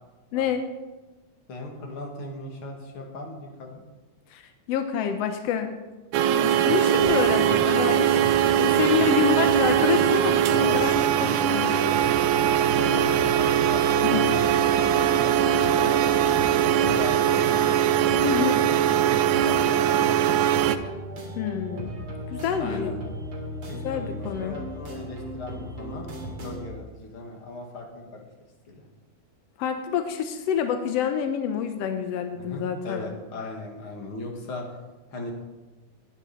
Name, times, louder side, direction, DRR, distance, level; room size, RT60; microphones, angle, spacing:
voice 1, 0.3-0.6 4.3-5.8 6.2-11.9 14.0-14.3 18.2-18.6 21.3-21.9 22.3-22.9 23.7-24.6 29.6-33.1, left 7 dB, 80° left, 7 dB, 1.4 m, -27 dB
voice 2, 1.5-3.8 9.4-9.7 10.6-10.8 12.8-14.0 14.4-15.3 15.7-16.1 16.6-17.6 18.4-20.5 22.6-23.0 23.6-26.1 26.4-28.2 28.7-28.9 32.3-34.7 35.1-35.3, left 2 dB, 45° left, 1 dB, 2.6 m, -38 dB
sound 1, 6.1-20.8, right 10 dB, 80° right, 1.8 m, -21 dB
sound 2, 7.0-26.7, right 1 dB, 45° right, 3.5 m, -36 dB
sound 3, 13.2-22.3, right 5 dB, 5° left, 4.4 m, -37 dB
19.0 x 10.0 x 4.3 m, 1.2 s
omnidirectional pair, 3.8 m